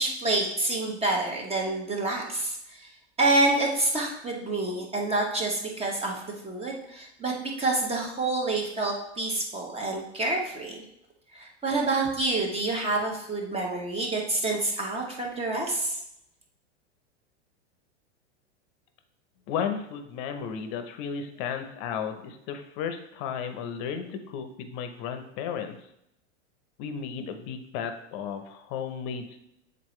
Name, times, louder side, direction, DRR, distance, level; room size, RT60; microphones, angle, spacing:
voice 1, 0.0-2.9 3.2-10.8 11.3-16.0, right 2 dB, 15° right, -1 dB, 1.2 m, -28 dB
voice 2, 19.5-25.8 26.8-29.4, left 7 dB, 45° left, 7 dB, 0.9 m, -34 dB
7.4 x 4.1 x 3.2 m, 0.80 s
hypercardioid pair, 115°, 37 cm